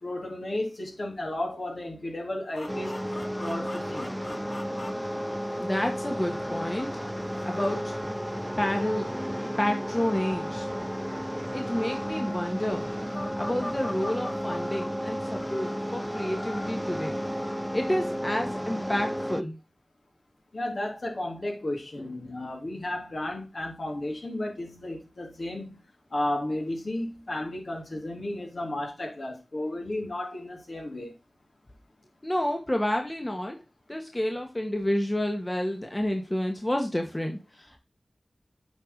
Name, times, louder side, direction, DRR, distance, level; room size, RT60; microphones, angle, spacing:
voice 1, 0.0-3.0 3.4-4.1 20.5-25.8 26.1-31.1, left 1 dB, 60° left, 3.3 m, -33 dB
sound 1, 2.5-10.3 10.9-17.9, left 1 dB, 45° left, 2.0 m, -45 dB
sound 2, 2.7-19.4, equal, ahead, 0.5 m, -33 dB
voice 2, 5.6-6.9 7.4-8.0 8.6-9.1 9.6-10.7 11.5-12.9 13.3-17.2 17.7-19.6 32.2-33.6 33.9-37.8, left 1 dB, 25° left, 1.5 m, -29 dB
8.0 x 5.0 x 3.9 m
cardioid pair, 45°, 0 cm